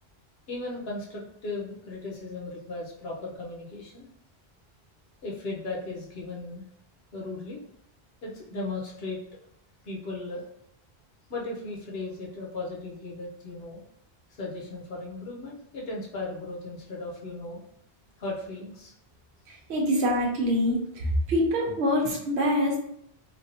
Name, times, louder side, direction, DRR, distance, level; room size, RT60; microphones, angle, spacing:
voice 1, 0.5-4.1 5.2-6.6 7.1-7.6 8.2-9.2 9.8-10.5 11.3-13.8 14.3-17.6 18.2-18.9, left 2 dB, 70° left, -3 dB, 1.1 m, -36 dB
voice 2, 19.7-20.8 21.3-22.8, equal, 90° right, -1 dB, 0.9 m, -24 dB
3.3 x 2.3 x 2.7 m, 0.72 s
omnidirectional pair, 1.1 m